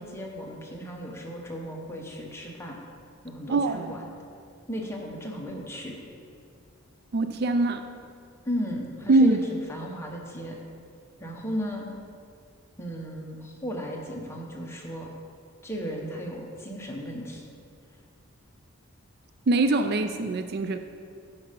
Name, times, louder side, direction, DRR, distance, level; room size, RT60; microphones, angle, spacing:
voice 1, 0.0-2.8 3.2-4.0 4.7-6.0 8.4-10.6 11.2-11.9 12.8-15.1 15.6-17.5, equal, 10° left, -1 dB, 1.1 m, -35 dB
voice 2, 3.5-3.9 7.1-7.9 9.1-9.4 19.5-20.8, right 2 dB, 50° right, 8 dB, 0.4 m, -23 dB
11.0 x 5.5 x 5.3 m, 2.4 s
head